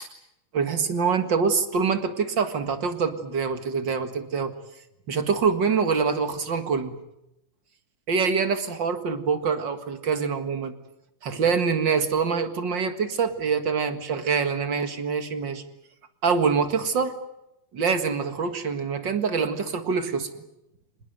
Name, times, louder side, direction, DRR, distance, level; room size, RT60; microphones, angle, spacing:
voice 1, 0.5-4.5 5.1-7.0 8.1-10.7 11.2-15.6 16.2-17.1 17.7-20.3, right 5 dB, 40° right, 9 dB, 2.1 m, -25 dB
26.0 x 20.0 x 9.2 m, 0.85 s
omnidirectional pair, 3.6 m